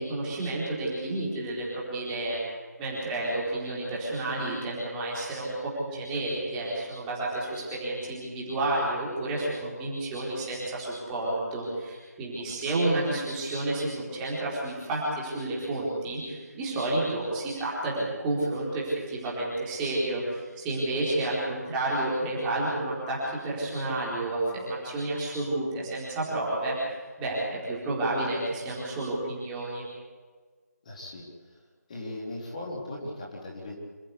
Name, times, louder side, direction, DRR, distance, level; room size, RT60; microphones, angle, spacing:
voice 1, 0.0-2.4 2.8-26.7 27.2-29.9, right 2 dB, 10° right, -7 dB, 4.3 m, -30 dB
voice 2, 30.8-31.2 31.9-33.8, left 1 dB, 25° left, -3 dB, 3.9 m, -38 dB
27.0 x 14.5 x 8.4 m, 1.4 s
figure-of-eight pair, 160°, 9 cm